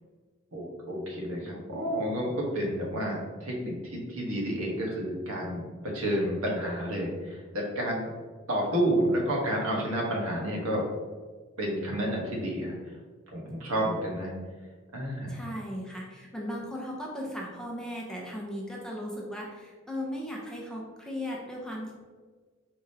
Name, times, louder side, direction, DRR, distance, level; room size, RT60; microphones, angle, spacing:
voice 1, 0.5-8.1 8.5-10.8 11.6-12.8 13.3-14.3 14.9-15.4, equal, 80° right, -2 dB, 1.2 m, -30 dB
voice 2, 15.3-21.9, equal, 5° left, -3 dB, 0.7 m, -37 dB
4.9 x 3.5 x 2.8 m, 1.5 s
head